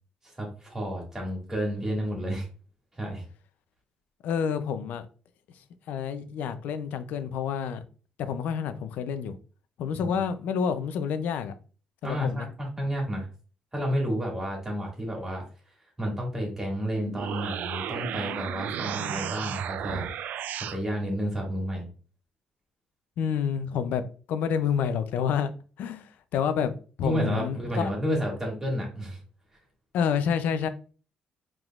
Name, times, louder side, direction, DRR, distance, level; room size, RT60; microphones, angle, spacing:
voice 1, 0.4-2.5 2.9-3.2 10.0-10.2 12.0-13.3 13.7-15.4 16.0-20.1 20.7-21.9 27.0-29.2, equal, 15° right, 2.2 m, -31 dB
voice 2, 4.2-5.1 5.9-7.8 8.2-9.3 9.8-11.5 12.0-12.5 23.2-24.0 24.3-25.5 25.8-27.9 29.9-30.7, left 7 dB, 80° left, 0.5 m, -28 dB
sound 1, 17.0-20.8, right 10 dB, 75° right, 0.3 m, -34 dB
4.9 x 3.6 x 2.4 m
cardioid pair, 105°, 3 cm